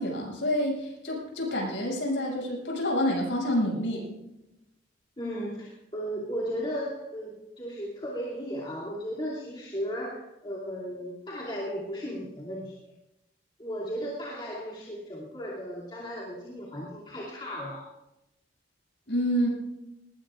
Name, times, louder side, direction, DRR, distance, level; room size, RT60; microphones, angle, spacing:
voice 1, 0.0-4.1 19.1-19.5, equal, 85° left, -2 dB, 7.1 m, -28 dB
voice 2, 5.2-12.8 13.6-17.9, equal, 30° left, -7 dB, 2.8 m, -35 dB
20.5 x 20.5 x 2.5 m, 0.91 s
head